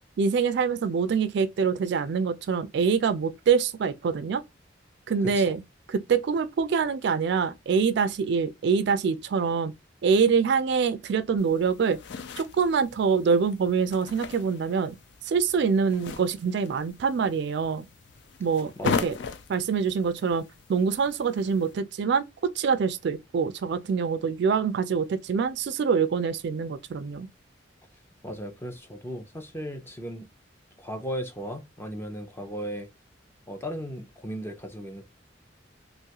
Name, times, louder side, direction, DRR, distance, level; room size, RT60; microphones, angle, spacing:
voice 1, 0.2-4.4 5.1-5.6 5.9-9.7 10.0-12.0 12.4-15.0 15.3-17.9 18.4-19.2 19.5-20.4 20.7-27.3, right 5 dB, 65° right, 0.3 m, -25 dB
voice 2, 5.2-5.6 18.8-19.2 28.2-30.3 30.8-32.9 33.5-35.0, equal, 15° left, 0.5 m, -36 dB
sound 1, 11.4-21.7, left 5 dB, 65° left, 0.4 m, -38 dB
3.0 x 2.3 x 2.8 m
head